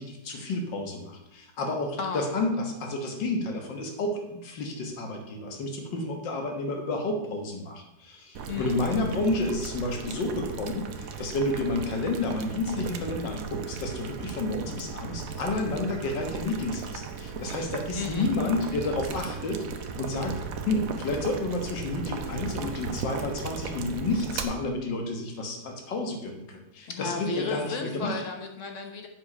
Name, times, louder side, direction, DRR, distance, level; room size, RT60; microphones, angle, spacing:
voice 1, 0.0-19.7 20.0-20.4 20.7-28.2, left 2 dB, 80° left, 3 dB, 2.0 m, -30 dB
Boiling, 8.3-24.4, right 5 dB, 60° right, 1.0 m, -36 dB
voice 2, 8.5-8.8 17.9-18.3 26.9-29.1, left 4 dB, 50° left, 4 dB, 1.1 m, -33 dB
8.2 x 5.1 x 5.5 m, 0.87 s
omnidirectional pair, 2.0 m